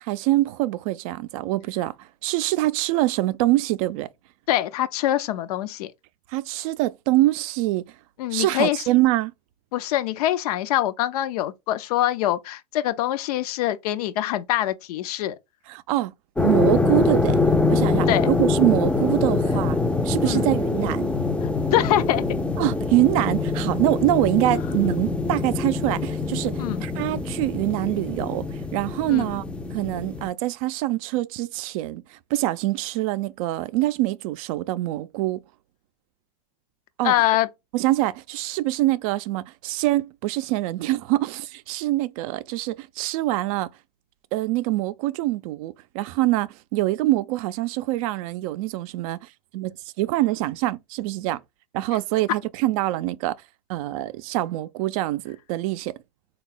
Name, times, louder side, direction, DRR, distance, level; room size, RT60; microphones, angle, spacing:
voice 1, 0.0-4.1 6.3-7.8 8.3-9.3 15.7-16.1 16.4-17.4 17.7-19.8 20.0-21.1 22.6-29.4 29.7-35.4 37.0-37.1 37.7-43.7 44.3-49.3 49.5-51.4 51.7-53.4 53.7-55.9, right 16 dB, 60° right, 0.4 m, -24 dB
voice 2, 4.5-5.9 8.2-8.8 9.7-15.4 18.1-18.3 20.3-20.5 21.4-22.3 26.6-26.8 29.1-29.3 37.0-37.5, left 13 dB, 70° left, 0.5 m, -24 dB
sound 1, 16.4-30.3, left 3 dB, 5° left, 0.4 m, -24 dB
3.9 x 2.3 x 3.6 m
hypercardioid pair, 95°, 20 cm